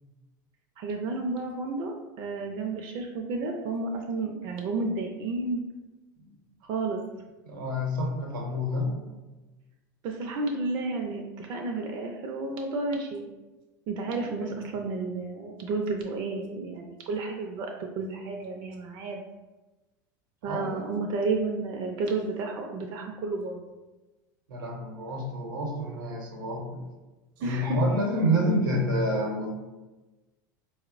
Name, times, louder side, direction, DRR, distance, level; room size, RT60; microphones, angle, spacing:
voice 1, 0.8-5.6 6.6-7.0 10.0-13.3 13.9-19.2 20.4-23.6 27.4-27.8, right 3 dB, 50° right, 2 dB, 0.4 m, -31 dB
voice 2, 7.4-8.9 14.2-14.3 20.4-21.0 24.5-26.8 27.4-29.5, equal, 90° right, 1 dB, 0.7 m, -28 dB
4.0 x 2.0 x 2.4 m, 1.1 s
hypercardioid pair, 90°, 11 cm